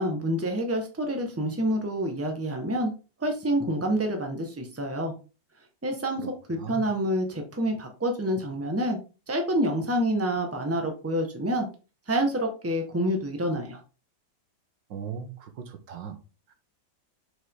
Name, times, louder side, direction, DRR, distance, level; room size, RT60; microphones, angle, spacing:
voice 1, 0.0-2.9 3.2-5.1 5.8-6.2 6.5-9.0 9.3-11.7 12.1-13.8, equal, 10° right, 1.3 m, -27 dB
voice 2, 6.2-6.9 14.9-16.2, right 7 dB, 80° right, 1.8 m, -38 dB
7.1 x 5.6 x 3.7 m
omnidirectional pair, 2.0 m